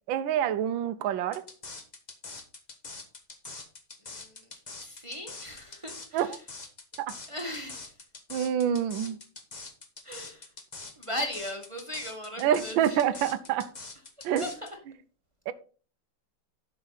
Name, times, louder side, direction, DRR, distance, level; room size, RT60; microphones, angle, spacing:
voice 1, 0.1-1.4 6.1-6.4 7.0-7.1 8.3-9.2 12.4-13.7 14.2-14.5 15.5-15.6, right 9 dB, 75° right, 1.4 m, -27 dB
sound 1, 1.3-14.7, left 3 dB, 25° left, 1.1 m, -44 dB
voice 2, 4.1-4.4 4.8-6.4 7.3-7.9 9.0-9.1 10.0-10.5 11.0-13.2 14.4-14.7, left 1 dB, 15° right, 1.4 m, -38 dB
12.0 x 6.2 x 4.0 m
omnidirectional pair, 2.3 m